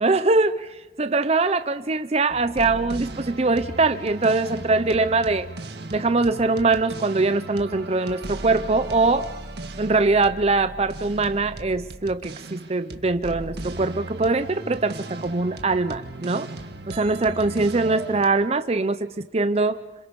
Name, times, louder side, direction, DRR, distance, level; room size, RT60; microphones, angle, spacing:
voice 1, 0.0-5.5 5.9-9.3 9.8-16.5 16.9-19.8, right 3 dB, 35° right, 11 dB, 0.7 m, -22 dB
sound 1, 2.3-18.3, right 2 dB, 65° right, 1.8 m, -37 dB
27.5 x 27.0 x 5.4 m, 1.2 s
head